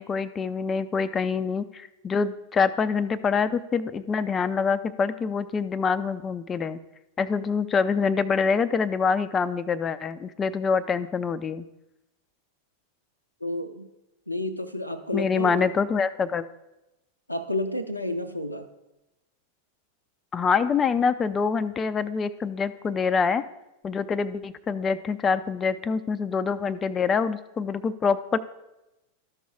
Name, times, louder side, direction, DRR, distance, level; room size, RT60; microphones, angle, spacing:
voice 1, 0.0-6.8 7.2-11.7 15.1-16.4 20.3-23.4 23.8-28.4, left 5 dB, 20° left, 13 dB, 0.5 m, -25 dB
voice 2, 13.4-13.9 14.3-15.7 17.3-18.7, left 1 dB, 85° left, 8 dB, 0.6 m, -30 dB
13.0 x 5.4 x 4.8 m, 0.95 s
figure-of-eight pair, 90°, 0 cm